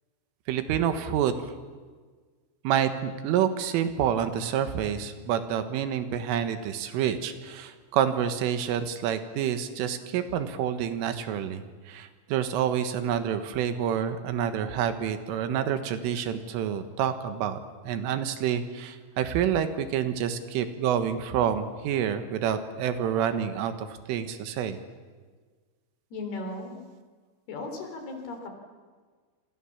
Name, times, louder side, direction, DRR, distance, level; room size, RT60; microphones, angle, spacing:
voice 1, 0.5-1.5 2.7-17.6 17.8-24.8, right 9 dB, 80° right, 9 dB, 4.0 m, -28 dB
voice 2, 26.1-26.8 27.5-28.5, left 2 dB, 55° left, 5 dB, 5.3 m, -36 dB
27.0 x 26.5 x 7.3 m, 1.5 s
omnidirectional pair, 5.7 m